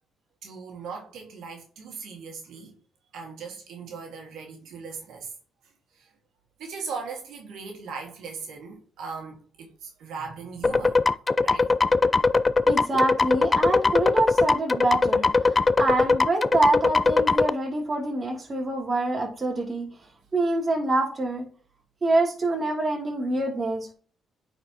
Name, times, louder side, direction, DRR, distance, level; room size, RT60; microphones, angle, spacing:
voice 1, 0.4-2.8 3.1-5.3 5.9-6.1 6.6-11.2 11.4-11.7, right 5 dB, 80° right, 1.7 m, -39 dB
sound 1, 10.6-17.5, left 3 dB, 25° left, 0.3 m, -20 dB
voice 2, 12.7-19.9 20.3-21.4 22.0-23.9, right 2 dB, 30° right, 2.6 m, -26 dB
9.1 x 4.4 x 2.9 m
cardioid pair, 90°, 0 cm